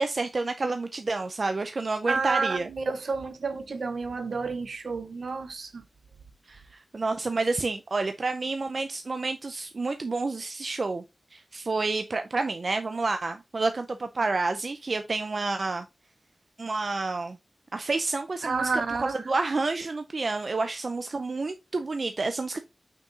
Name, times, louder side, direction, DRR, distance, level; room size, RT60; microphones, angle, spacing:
voice 1, 0.0-2.7 6.5-11.0 11.3-15.8 16.6-17.4 17.7-22.6, right 3 dB, 55° right, 0.5 m, -29 dB
voice 2, 2.1-5.8 18.4-19.2, right 4 dB, 85° right, 0.8 m, -30 dB
5.9 x 4.5 x 3.9 m
wide cardioid pair, 100°, 0 cm